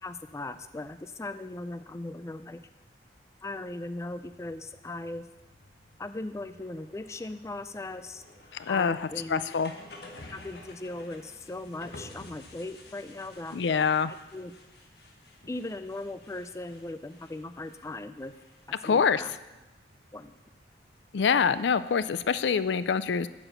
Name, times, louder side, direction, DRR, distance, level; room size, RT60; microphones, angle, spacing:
voice 1, 0.0-2.6 3.4-5.3 6.0-8.2 8.7-9.4 10.3-13.6 14.1-14.5 15.5-18.3 18.7-19.3 20.1-20.4, left 2 dB, 15° left, 11 dB, 0.4 m, -38 dB
sound 1, 4.2-22.2, left 2 dB, 65° left, 1.4 m, -53 dB
voice 2, 8.6-9.7 13.5-14.1 18.8-19.2 21.1-23.3, left 6 dB, 80° left, 15 dB, 0.4 m, -25 dB
8.8 x 6.1 x 8.0 m, 1.0 s
head